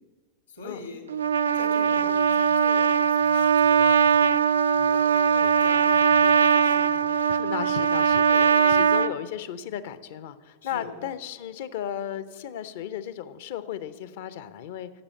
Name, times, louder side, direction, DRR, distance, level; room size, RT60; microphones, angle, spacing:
voice 1, 0.5-1.0 1.5-4.2 4.7-7.1 8.3-8.8 10.6-10.9, left 3 dB, 70° left, 5 dB, 2.1 m, -43 dB
Trumpet, 1.1-9.1, right 7 dB, 70° right, 0.3 m, -21 dB
voice 2, 7.3-14.9, left 10 dB, 55° left, 15 dB, 0.7 m, -35 dB
11.0 x 7.5 x 9.0 m, 1.4 s
figure-of-eight pair, 90°, 0 cm